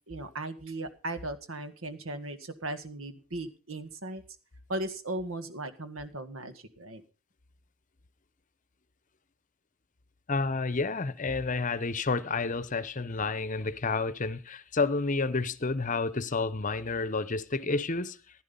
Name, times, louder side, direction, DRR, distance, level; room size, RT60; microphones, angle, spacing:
voice 1, 0.1-4.2 4.7-7.0, right 2 dB, 75° right, 1.8 m, -37 dB
voice 2, 10.3-18.2, left 3 dB, 40° left, 0.9 m, -30 dB
15.5 x 11.0 x 5.4 m
head